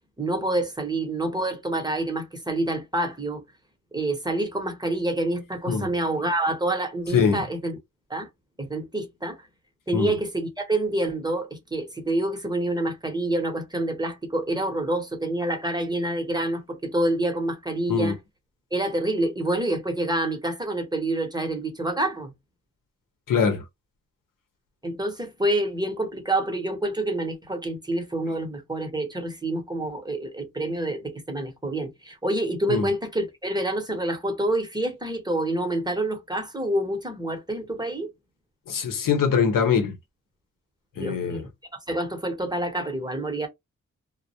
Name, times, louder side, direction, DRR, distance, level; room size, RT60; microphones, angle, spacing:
voice 1, 0.2-3.4 3.9-7.8 8.1-8.3 8.6-9.4 9.9-18.2 18.7-22.3 24.8-38.1 41.0-41.5 41.9-43.5, right 1 dB, 15° right, 0.8 m, -27 dB
voice 2, 7.1-7.4 9.9-10.2 17.9-18.1 23.3-23.6 32.7-32.9 38.7-40.0 41.0-41.4, left 6 dB, 85° left, 0.8 m, -23 dB
2.2 x 2.0 x 2.7 m
cardioid pair, 70°, 32 cm